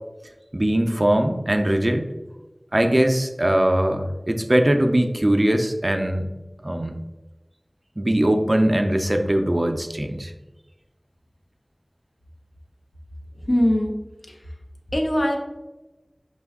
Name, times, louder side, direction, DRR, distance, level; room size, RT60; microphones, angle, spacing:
voice 1, 0.5-2.1 2.7-6.3 6.6-6.9 8.0-10.3, right 1 dB, 40° right, 5 dB, 0.4 m, -21 dB
voice 2, 13.4-13.9 14.3-14.5 14.9-15.4, equal, 70° left, 0 dB, 0.7 m, -21 dB
5.2 x 2.3 x 3.5 m, 1.1 s
wide cardioid pair, 40°, 0 cm